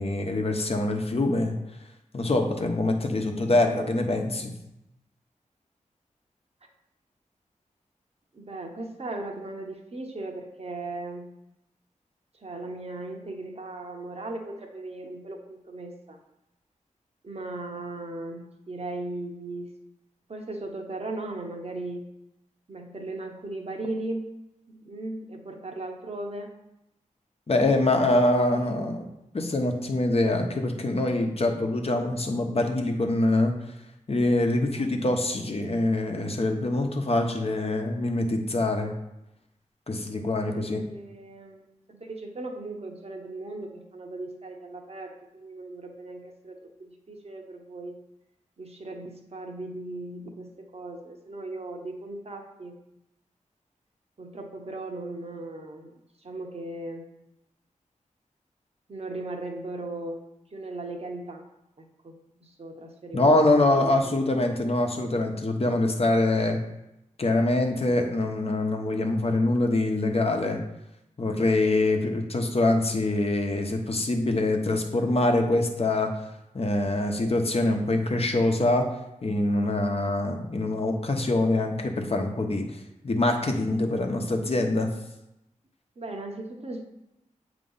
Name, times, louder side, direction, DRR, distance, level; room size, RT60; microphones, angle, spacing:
voice 1, 0.0-1.6 2.1-4.5 27.5-29.1 29.3-33.5 34.1-38.9 39.9-40.8 63.1-66.6 67.2-70.6 71.2-76.1 76.5-78.9 79.2-82.7 83.0-84.9, left 2 dB, 50° left, 3 dB, 1.0 m, -24 dB
voice 2, 8.3-11.3 12.3-16.2 17.2-19.7 20.3-22.1 22.7-24.3 24.7-26.5 27.7-29.0 34.8-35.2 38.4-38.5 40.5-48.0 48.6-52.8 54.2-55.9 56.2-57.0 58.9-60.2 60.5-61.4 61.8-64.2 71.8-71.9 86.0-86.9, right 2 dB, 50° right, 2 dB, 1.1 m, -38 dB
7.6 x 3.0 x 5.5 m, 0.89 s
cardioid pair, 60°, 13 cm